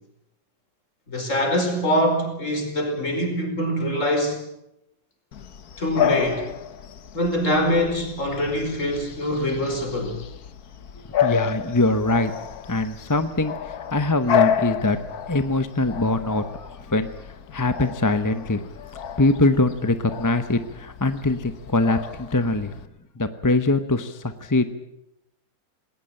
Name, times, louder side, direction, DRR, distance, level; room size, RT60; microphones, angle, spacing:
voice 1, 1.1-4.4 5.8-6.5 7.1-10.2, equal, 45° left, 4 dB, 5.3 m, -24 dB
Bark / Bird vocalization bird call bird song, 5.3-22.9, left 8 dB, 65° left, 1.5 m, -30 dB
voice 2, 10.9-12.3 12.7-15.0 15.3-18.6 19.2-22.7 23.1-24.8, left 2 dB, 15° left, 10 dB, 0.8 m, -23 dB
20.0 x 18.5 x 9.1 m, 0.82 s
omnidirectional pair, 1.8 m